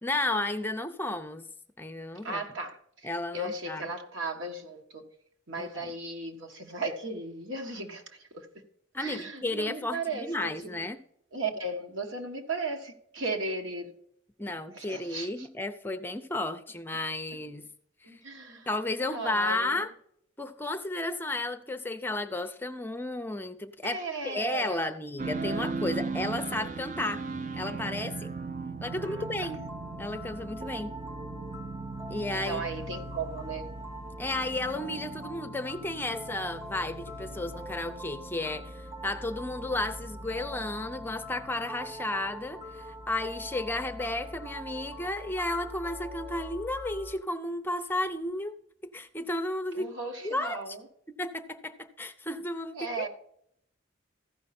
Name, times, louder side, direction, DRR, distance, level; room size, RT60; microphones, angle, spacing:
voice 1, 0.0-1.5 1.8-2.4 3.0-3.9 5.6-5.9 8.9-11.0 14.4-17.7 18.0-18.2 18.7-19.9 20.4-27.2 27.5-28.3 28.8-29.6 30.0-30.9 32.1-32.6 34.2-48.6 48.9-49.9 50.2-50.8 51.2-53.1, left 2 dB, 10° left, 8 dB, 0.5 m, -33 dB
voice 2, 2.2-3.1 3.3-5.0 5.5-8.5 9.0-10.8 11.3-13.9 14.7-15.5 18.0-18.7 19.0-19.8 23.8-24.9 29.0-29.2 32.3-33.7 49.7-50.8 52.7-53.1, right 3 dB, 90° right, 3 dB, 1.6 m, -36 dB
sound 1, 25.2-45.1, right 4 dB, 40° right, 0.4 m, -40 dB
sound 2, 28.8-47.2, equal, 15° right, 1.4 m, -43 dB
14.5 x 5.5 x 4.3 m, 0.70 s
head